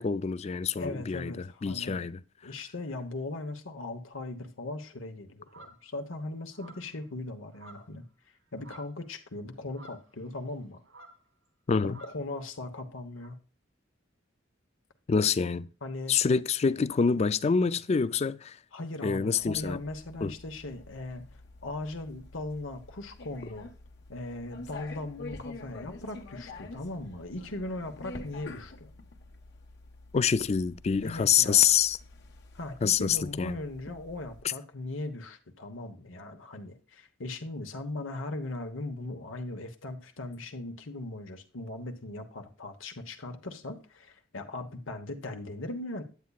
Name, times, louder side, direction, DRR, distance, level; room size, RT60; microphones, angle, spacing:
voice 1, 0.0-2.2 11.7-12.0 15.1-15.7 16.1-18.6 19.0-19.8 20.2-20.3 30.1-32.0 32.8-33.6, left 6 dB, 35° left, 0.4 m, -26 dB
voice 2, 0.8-2.1 2.4-8.0 8.5-10.8 11.8-13.4 15.8-16.1 18.7-21.2 21.6-23.7 24.1-28.9 31.0-31.7 32.5-46.0, left 2 dB, 90° left, 1.2 m, -39 dB
sound 1, 5.4-5.8 6.5-7.0 7.5-8.0 8.3-9.0 9.7-10.6 10.8-11.3 11.9-12.2 13.2-13.3, right 2 dB, 85° right, 2.3 m, -52 dB
sound 2, 19.4-34.4, left 2 dB, 60° left, 1.2 m, -48 dB
9.4 x 8.3 x 2.4 m
head